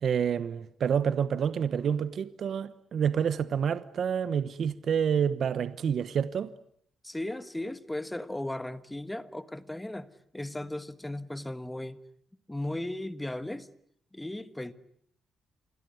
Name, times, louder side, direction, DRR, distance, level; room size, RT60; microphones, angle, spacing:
voice 1, 0.0-6.5, right 7 dB, 55° right, 1.1 m, -28 dB
voice 2, 7.0-12.0 12.5-13.7 14.1-14.7, left 1 dB, 10° left, 1.4 m, -36 dB
27.5 x 22.0 x 9.6 m
cardioid pair, 115°, 0 cm